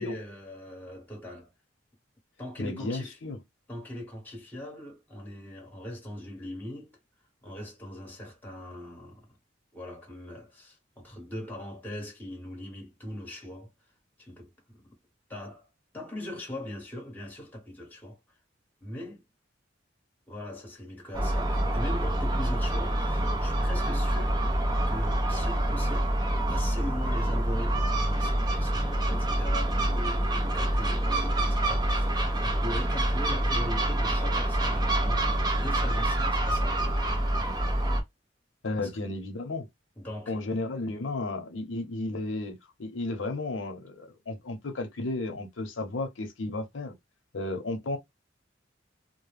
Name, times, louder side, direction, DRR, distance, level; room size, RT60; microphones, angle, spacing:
voice 1, 0.0-1.5 2.4-3.2 3.7-7.0 7.4-9.3 9.7-13.7 14.2-14.9 15.3-15.7 15.9-18.2 18.8-19.2 20.3-24.4 24.9-26.1 26.5-37.0 38.8-38.9 40.0-40.4, left 1 dB, 10° left, 1.1 m, -40 dB
voice 2, 2.6-3.4 38.6-39.7 40.3-46.9 47.3-48.0, left 2 dB, 85° left, 0.7 m, -33 dB
Gull seagull, 21.1-38.0, right 1 dB, 20° right, 0.6 m, -26 dB
2.2 x 2.1 x 3.2 m
head